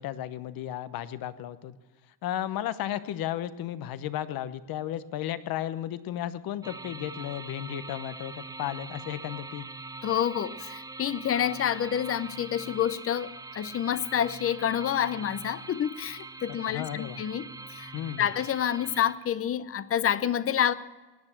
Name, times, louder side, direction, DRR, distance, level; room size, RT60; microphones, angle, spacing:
voice 1, 0.0-1.8 2.2-9.6 16.7-17.2 17.9-18.3, left 11 dB, 55° left, 14 dB, 1.0 m, -34 dB
sound 1, 6.6-19.1, right 3 dB, 10° right, 0.5 m, -43 dB
voice 2, 10.0-17.4 17.7-17.9 18.2-20.7, left 9 dB, 30° left, 16 dB, 0.7 m, -28 dB
17.0 x 9.8 x 7.3 m, 1.2 s
cardioid pair, 115°, 42 cm